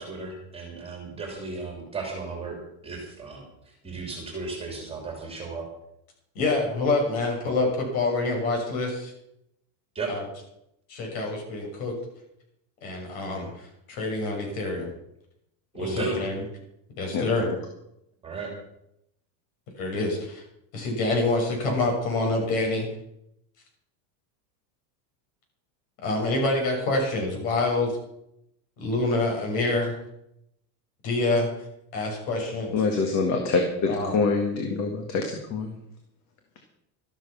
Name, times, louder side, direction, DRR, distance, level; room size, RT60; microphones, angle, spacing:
voice 1, 0.0-2.6 2.8-5.7 9.9-10.1 15.7-16.2 18.2-18.5, right 3 dB, 10° right, 1 dB, 3.0 m, -35 dB
voice 2, 6.3-9.1 10.1-10.2 10.9-11.9 12.8-13.5 13.9-14.9 15.8-16.4 17.0-17.5 19.8-20.4 20.7-22.8 26.0-27.9 28.8-30.0 31.0-31.5 31.9-32.7 33.9-34.1, left 2 dB, 60° left, 1 dB, 6.7 m, -26 dB
voice 3, 32.7-35.7, left 4 dB, 35° left, 4 dB, 1.8 m, -25 dB
13.0 x 12.5 x 5.8 m, 0.79 s
supercardioid pair, 170°, 48 cm